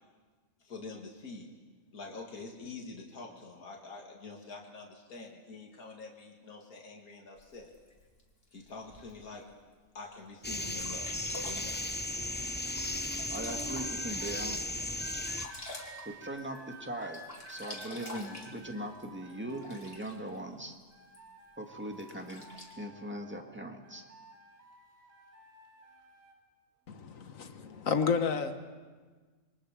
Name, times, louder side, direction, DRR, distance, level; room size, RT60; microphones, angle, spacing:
voice 1, 0.6-1.5 1.9-7.7 8.5-9.5 9.9-11.8, left 3 dB, 85° left, 0 dB, 2.4 m, -46 dB
Sink (filling or washing), 7.4-9.4 10.0-10.1 10.5-10.6 10.7-14.3 14.6-16.7 17.0-20.4 21.1-21.2 21.9-22.8, left 2 dB, 40° left, 2.9 m, -48 dB
sound 1, 10.4-15.5, left 1 dB, 10° left, 0.5 m, -35 dB
voice 2, 13.3-14.6 16.0-17.2 17.5-20.8 21.6-22.4 22.8-24.0, right 1 dB, 10° right, 3 dB, 1.8 m, -40 dB
sound 2, 13.8-14.5 15.0-20.5 20.9-23.5 23.8-26.4 27.1-27.4, right 2 dB, 65° right, 3.3 m, -52 dB
voice 3, 26.9-28.6, left 6 dB, 65° left, 8 dB, 1.6 m, -31 dB
27.0 x 23.0 x 5.0 m, 1.4 s
omnidirectional pair, 1.5 m